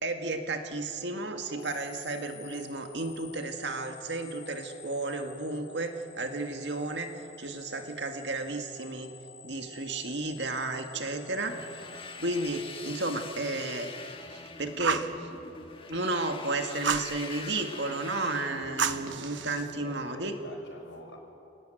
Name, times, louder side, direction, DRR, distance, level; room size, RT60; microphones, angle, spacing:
voice 1, 0.0-9.1 9.4-11.6 12.2-15.3 15.9-20.3, right 2 dB, 70° right, 5 dB, 2.0 m, -33 dB
sound 1, 1.5-13.6, left 5 dB, 65° left, 3.2 m, -51 dB
sound 2, 11.4-19.2, left 3 dB, 30° left, 1.6 m, -44 dB
voice 2, 11.5-11.8 19.1-21.2, left 2 dB, 80° left, 1 dB, 6.0 m, -48 dB
Fire, 14.8-15.2 16.8-17.1 18.8-19.7, right 5 dB, 85° right, 1.1 m, -30 dB
29.5 x 19.0 x 9.1 m, 2.9 s
head